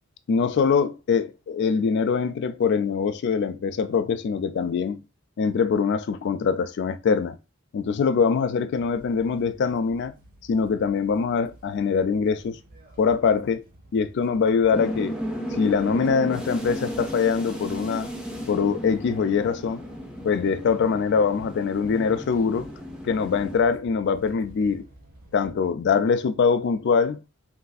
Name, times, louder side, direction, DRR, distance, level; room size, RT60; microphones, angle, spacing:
voice 1, 0.3-5.0 5.4-7.4 7.7-10.1 10.5-12.6 13.0-13.6 13.9-15.2 15.6-18.1 18.5-19.8 20.2-22.7 23.0-24.8 25.3-27.2, left 5 dB, 55° left, 0.3 m, -23 dB
sound 1, 8.7-25.5, right 1 dB, 45° right, 0.9 m, -52 dB
sound 2, 14.7-23.6, equal, 5° right, 0.6 m, -34 dB
3.2 x 2.5 x 2.3 m
head